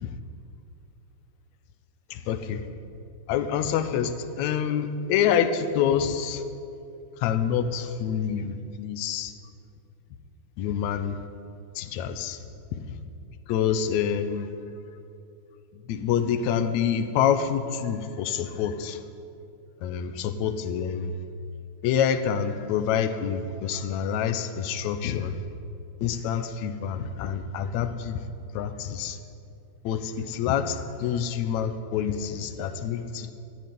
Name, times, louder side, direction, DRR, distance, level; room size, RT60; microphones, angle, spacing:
voice 1, 2.1-2.6 3.3-6.4 7.2-9.3 10.6-11.2 11.8-12.4 12.7-13.0 13.5-14.5 15.7-19.0 19.8-21.2 21.8-25.4 26.0-28.2 28.5-29.2 29.8-33.3, left 8 dB, 80° left, 10 dB, 2.0 m, -27 dB
13.5 x 8.7 x 9.3 m, 2.6 s
omnidirectional pair, 3.3 m